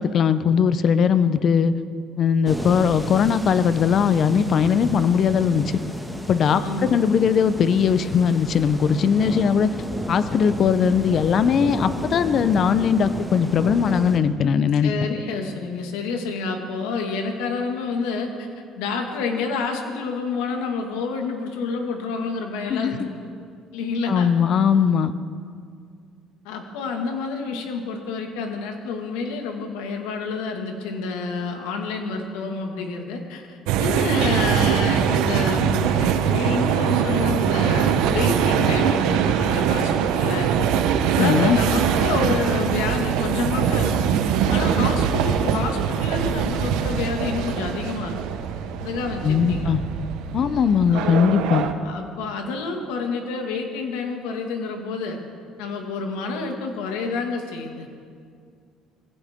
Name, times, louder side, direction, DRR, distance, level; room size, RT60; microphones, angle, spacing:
voice 1, 0.0-1.7 2.2-5.8 6.3-9.7 10.1-14.9 22.7-23.1 24.1-25.1 41.2-41.6 49.2-49.8 50.3-51.7, left 7 dB, 55° left, 13 dB, 0.8 m, -19 dB
sound 1, 2.5-14.2, right 1 dB, 5° left, 1.9 m, -33 dB
voice 2, 6.5-7.1 9.2-9.4 14.8-18.5 18.8-23.1 23.7-24.3 26.5-40.5 41.2-44.1 44.5-48.2 48.8-49.7 50.9-51.1 51.8-55.2 55.6-57.9, left 4 dB, 90° left, 3 dB, 2.0 m, -28 dB
sound 2, 33.7-51.7, right 8 dB, 85° right, 1.0 m, -22 dB
21.5 x 16.0 x 3.7 m, 2.2 s
supercardioid pair, 85°, 0 cm